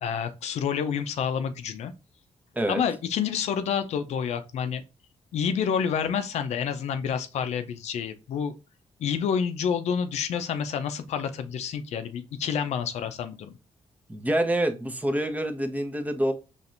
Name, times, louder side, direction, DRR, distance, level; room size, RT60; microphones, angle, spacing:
voice 1, 0.0-1.9 2.7-4.8 5.3-8.5 9.0-13.6, left 7 dB, 80° left, 0.5 m, -28 dB
voice 2, 14.1-16.3, right 1 dB, 15° right, 0.7 m, -26 dB
4.3 x 3.1 x 2.5 m
cardioid pair, 85°, 11 cm